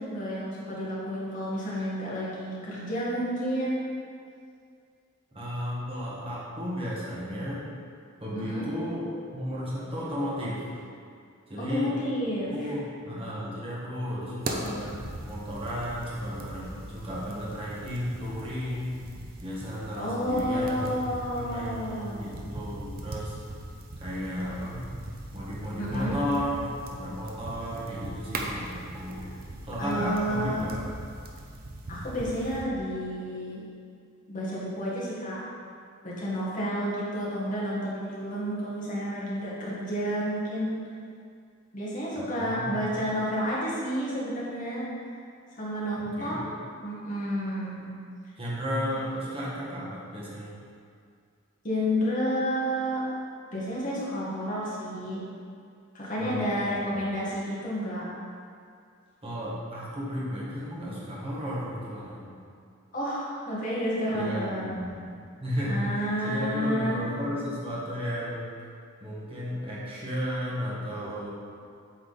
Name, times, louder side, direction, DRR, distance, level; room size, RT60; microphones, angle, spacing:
voice 1, 0.0-3.8 8.3-8.6 11.6-12.7 19.9-22.3 25.8-26.1 29.8-30.6 31.9-33.6 34.3-35.4 36.0-40.8 41.7-44.9 45.5-47.9 51.6-53.1 53.5-55.2 55.9-58.1 62.9-64.7 65.6-67.0, equal, 40° left, -7 dB, 1.6 m, -30 dB
voice 2, 5.3-7.7 8.2-9.1 9.3-10.7 11.5-12.0 12.5-14.9 15.2-18.9 19.4-21.0 21.3-23.4 24.0-24.8 25.3-29.3 29.6-30.8 42.1-43.0 46.0-46.4 48.4-50.5 56.2-57.1 59.2-62.4 64.1-68.5 69.0-71.3, equal, 25° right, -7 dB, 1.4 m, -34 dB
sound 1, 14.4-32.6, right 1 dB, 45° right, 0.6 m, -40 dB
8.1 x 3.6 x 4.0 m, 2.3 s
head